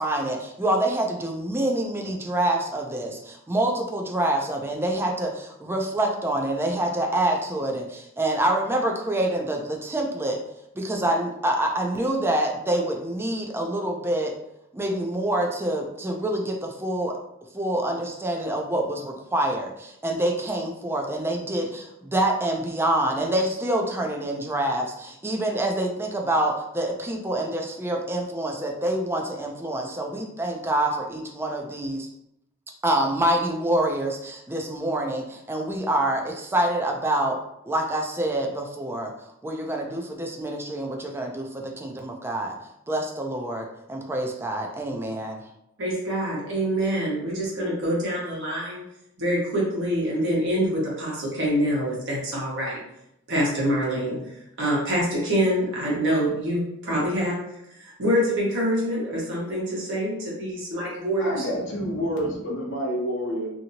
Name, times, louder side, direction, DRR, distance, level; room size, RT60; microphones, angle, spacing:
voice 1, 0.0-10.4 10.8-14.3 14.7-17.1 17.5-32.1 32.8-37.4 37.7-42.6 42.9-45.5, right 1 dB, 10° right, 1 dB, 0.4 m, -26 dB
voice 2, 45.8-48.8 49.2-52.8 53.3-54.2 54.6-57.4 57.8-61.4, equal, 60° right, -5 dB, 1.2 m, -25 dB
voice 3, 61.2-63.5, equal, 60° left, -3 dB, 0.8 m, -28 dB
2.8 x 2.6 x 2.7 m, 0.80 s
head